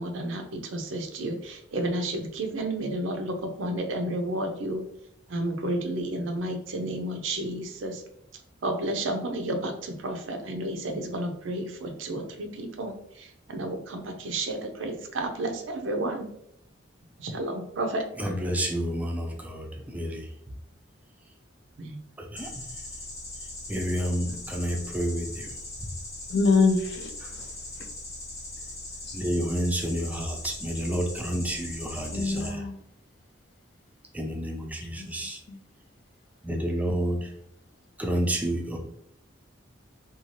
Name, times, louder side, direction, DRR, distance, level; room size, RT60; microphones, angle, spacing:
voice 1, 0.0-4.8 5.3-8.0 8.6-16.3 17.2-18.0 21.8-22.0, right 1 dB, 70° right, 4 dB, 0.5 m, -31 dB
voice 2, 18.2-20.3 22.2-22.6 23.7-25.5 29.1-32.6 34.1-35.4 36.4-37.3 38.0-38.8, equal, 10° right, 2 dB, 0.4 m, -30 dB
sound 1, 22.4-32.5, left 2 dB, 35° left, 0.9 m, -40 dB
voice 3, 26.3-27.1 27.4-27.5 29.1-29.2 32.0-32.8 35.0-35.1 35.5-35.6, left 4 dB, 60° left, 5 dB, 0.4 m, -25 dB
2.7 x 2.3 x 3.0 m, 0.73 s
head